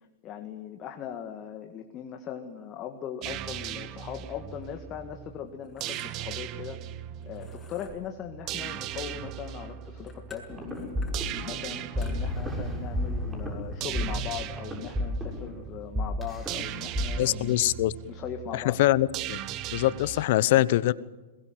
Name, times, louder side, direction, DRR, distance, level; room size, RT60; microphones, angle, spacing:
voice 1, 0.2-6.8 7.2-11.0 11.4-17.6 18.1-18.8, left 8 dB, 35° left, 5 dB, 2.0 m, -39 dB
sound 1, 3.2-20.3, right 12 dB, 40° right, 1.3 m, -39 dB
sound 2, 4.6-14.4, left 3 dB, 15° left, 7.4 m, -54 dB
sound 3, 10.5-17.1, equal, 15° right, 7.2 m, -32 dB
voice 2, 17.2-17.9 18.5-19.4 19.7-20.9, left 15 dB, 55° left, 19 dB, 0.9 m, -23 dB
22.0 x 21.0 x 7.9 m, 1.2 s
hypercardioid pair, 110°, 0 cm